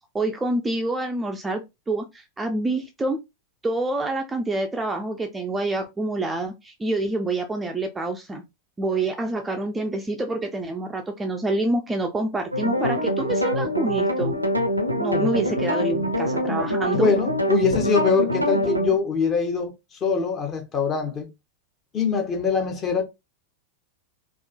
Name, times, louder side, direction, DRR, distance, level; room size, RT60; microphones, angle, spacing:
voice 1, 0.1-3.2 3.6-8.4 8.8-14.4 15.0-17.1, right 2 dB, 10° right, 0.4 m, -27 dB
sound 1, 12.5-19.0, equal, 90° right, 0.5 m, -24 dB
voice 2, 17.0-21.3 21.9-23.0, left 5 dB, 25° left, 0.9 m, -23 dB
3.7 x 2.4 x 2.2 m
figure-of-eight pair, 90°, 0 cm